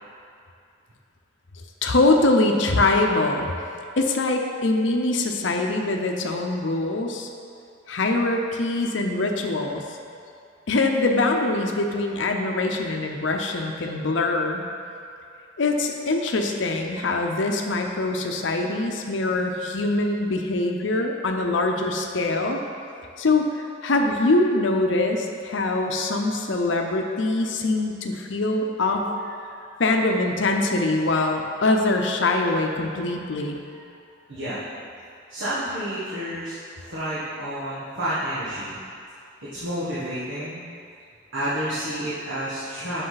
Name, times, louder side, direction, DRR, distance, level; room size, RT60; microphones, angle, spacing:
voice 1, 1.8-3.5 4.0-7.3 7.9-9.8 10.7-14.6 15.6-22.6 23.2-29.1 29.8-33.6, left 2 dB, 70° left, 3 dB, 0.7 m, -23 dB
voice 2, 29.2-29.7 33.6-33.8 34.3-34.6 35.3-38.8 39.4-40.6 41.3-43.1, right 1 dB, 75° right, -12 dB, 1.4 m, -30 dB
7.7 x 6.3 x 4.0 m, 2.4 s
head